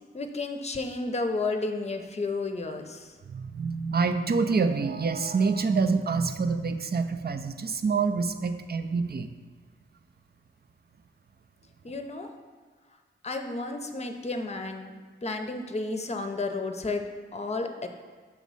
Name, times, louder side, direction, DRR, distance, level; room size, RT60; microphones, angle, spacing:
voice 1, 0.1-3.1 11.8-12.3 13.2-17.9, left 3 dB, 30° left, 5 dB, 0.6 m, -32 dB
voice 2, 3.3-9.3, right 4 dB, 50° right, 8 dB, 0.5 m, -26 dB
6.3 x 3.1 x 5.4 m, 1.5 s
cardioid pair, 50°, 21 cm